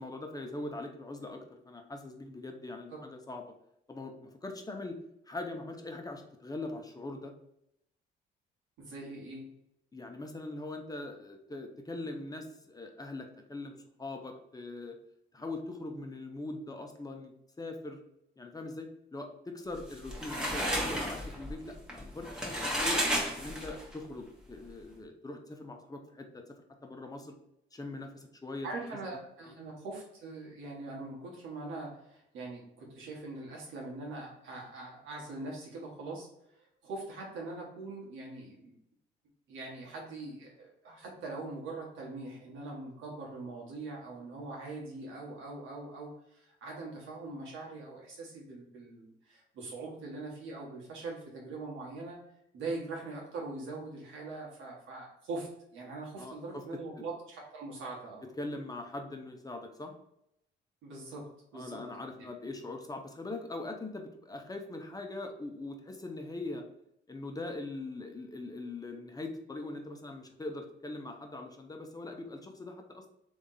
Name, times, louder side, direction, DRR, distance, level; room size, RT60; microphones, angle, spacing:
voice 1, 0.0-3.4 3.9-5.0 5.3-7.3 9.9-15.0 15.3-18.0 18.4-23.0 23.3-26.6 26.8-27.4 27.7-28.7 29.4-29.5 56.2-56.6 57.0-57.1 58.2-59.9 61.5-66.6 67.1-73.1, left 2 dB, 20° left, 4 dB, 0.9 m, -41 dB
voice 2, 8.8-9.5 28.6-36.3 36.6-38.8 39.5-52.2 52.5-58.2 60.8-61.8, right 3 dB, 85° right, -2 dB, 1.7 m, -42 dB
sound 1, 19.8-24.0, equal, 5° right, 1.2 m, -33 dB
3.5 x 3.5 x 4.1 m, 0.79 s
cardioid pair, 90°, 20 cm